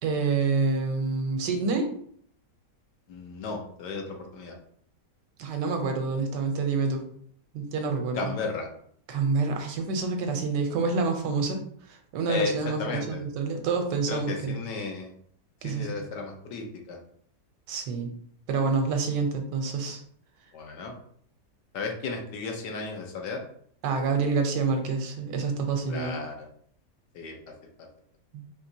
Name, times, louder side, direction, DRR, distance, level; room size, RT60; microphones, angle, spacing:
voice 1, 0.0-1.9 5.4-7.0 7.5-8.3 9.1-14.5 15.6-16.0 17.7-18.1 18.5-20.0 23.8-26.2 28.3-28.5, right 4 dB, 80° right, 4 dB, 1.3 m, -27 dB
voice 2, 3.1-4.6 8.1-8.7 12.3-13.2 14.1-15.1 15.6-17.0 20.5-20.9 21.7-23.4 25.9-26.5 27.1-27.4, left 4 dB, 80° left, 2 dB, 1.4 m, -34 dB
4.8 x 2.9 x 2.7 m, 0.62 s
omnidirectional pair, 1.8 m